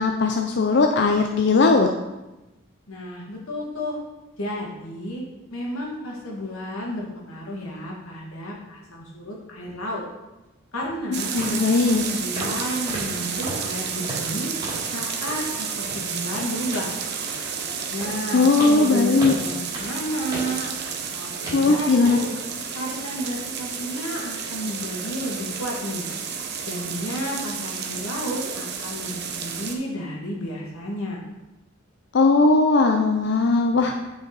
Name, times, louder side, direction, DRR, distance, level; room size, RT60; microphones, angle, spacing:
voice 1, 0.0-1.9 11.1-12.0 18.3-19.3 21.5-22.2 32.1-33.9, left 3 dB, 55° left, 3 dB, 0.5 m, -19 dB
voice 2, 2.9-4.0 4.4-5.2 5.5-10.0 10.7-14.5 14.9-16.9 17.9-22.3 22.7-26.1 26.7-31.2, equal, 90° left, -2 dB, 2.0 m, -32 dB
sound 1, 10.7-10.8 11.4-11.6 11.9-12.1 12.4-12.6 12.9-14.9 15.2-15.5 15.8-21.1 21.5-21.7 22.0-22.2 22.7-22.8, right 1 dB, 20° right, 2.7 m, -35 dB
sound 2, 11.1-29.7, right 6 dB, 50° right, 0.8 m, -31 dB
8.8 x 5.2 x 4.0 m, 1.0 s
head